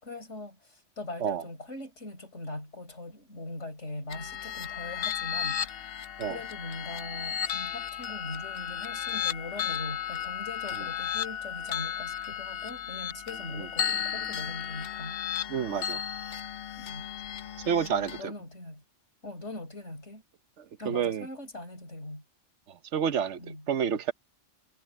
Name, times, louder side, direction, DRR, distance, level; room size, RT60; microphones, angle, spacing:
voice 1, 0.0-5.9 6.2-15.2 16.8-17.1 18.2-18.8 19.2-20.2 20.8-22.2 23.4-23.7, left 2 dB, 85° left, 5.5 m, -41 dB
sound 1, 4.1-18.2, left 9 dB, 60° left, 0.9 m, -34 dB
voice 2, 15.5-16.0 17.7-18.3 20.9-21.3 22.7-23.4 23.7-24.1, right 7 dB, 80° right, 1.2 m, -29 dB
omnidirectional pair, 1.2 m